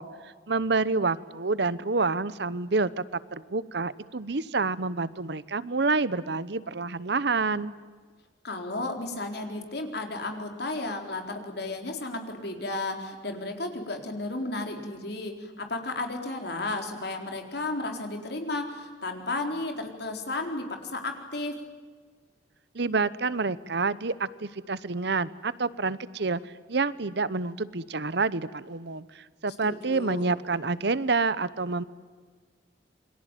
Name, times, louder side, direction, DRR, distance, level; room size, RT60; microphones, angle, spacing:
voice 1, 0.0-2.9 3.3-7.7 22.7-31.8, right 3 dB, 65° right, 17 dB, 0.9 m, -28 dB
voice 2, 8.4-21.6 29.6-30.3, left 2 dB, 60° left, 4 dB, 4.2 m, -33 dB
28.0 x 23.0 x 9.1 m, 1.5 s
head